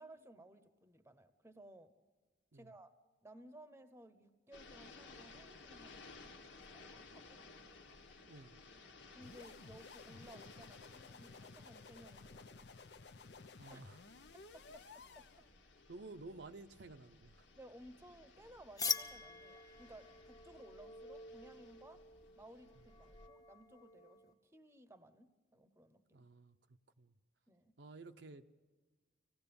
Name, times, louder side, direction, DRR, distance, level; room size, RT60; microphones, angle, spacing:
voice 1, 0.0-1.9 2.5-2.9 3.2-6.0 6.7-7.6 9.1-12.7 13.7-13.8 14.5-15.4 17.6-22.0 22.4-26.3 27.5-27.7, right 1 dB, 15° right, 11 dB, 0.9 m, -58 dB
sound 1, 4.5-23.3, left 3 dB, 80° left, 1.7 m, -59 dB
voice 2, 8.3-8.6 13.6-14.0 15.9-17.5 26.1-27.1 27.8-28.4, right 3 dB, 65° right, 8 dB, 0.8 m, -53 dB
sound 2, 9.2-15.5, left 4 dB, 60° left, 0.7 m, -56 dB
sound 3, 18.8-24.3, left 4 dB, 20° left, 0.8 m, -44 dB
25.5 x 17.0 x 7.0 m, 1.4 s
head